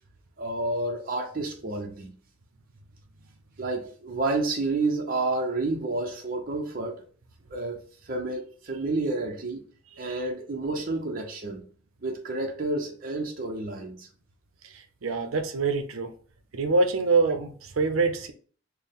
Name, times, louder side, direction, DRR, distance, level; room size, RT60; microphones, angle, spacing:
voice 1, 0.4-2.1 3.6-7.0 7.5-9.6 10.0-11.6 12.0-14.1, right 2 dB, 45° right, 0.6 m, -30 dB
voice 2, 15.0-16.1 16.5-18.3, right 3 dB, 85° right, 0.6 m, -25 dB
4.4 x 2.1 x 3.5 m
head